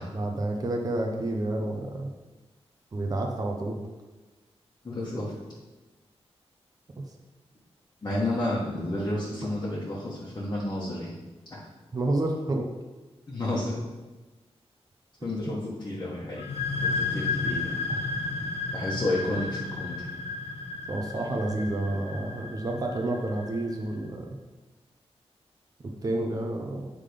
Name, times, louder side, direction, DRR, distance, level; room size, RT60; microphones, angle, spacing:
voice 1, 0.1-2.1 2.9-3.8 11.9-12.7 15.4-15.5 17.9-18.0 20.9-24.3 25.8-26.9, right 2 dB, 35° right, 1 dB, 0.7 m, -29 dB
voice 2, 4.8-5.3 8.0-11.2 11.5-11.6 13.3-13.8 15.2-16.5 16.8-17.8 18.7-20.1, left 1 dB, 40° left, -6 dB, 1.3 m, -31 dB
sound 1, 16.3-23.8, left 3 dB, 70° left, 0.9 m, -33 dB
8.3 x 3.8 x 5.0 m, 1.2 s
wide cardioid pair, 150°, 11 cm